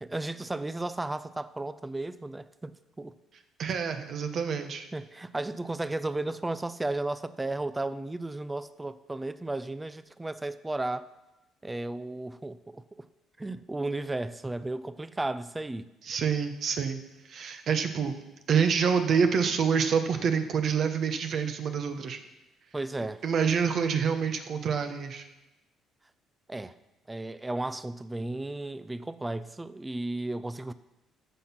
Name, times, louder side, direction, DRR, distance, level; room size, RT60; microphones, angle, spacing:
voice 1, 0.0-3.1 4.9-11.1 11.6-13.0 13.4-15.9 22.7-23.2 26.5-26.8 27.1-30.7, right 2 dB, 15° right, 14 dB, 0.6 m, -34 dB
voice 2, 3.6-4.9 16.0-17.0 17.3-18.1 18.5-22.2 23.2-25.2, right 6 dB, 60° right, 7 dB, 1.2 m, -27 dB
14.5 x 5.8 x 5.9 m, 1.0 s
supercardioid pair, 70°, 0 cm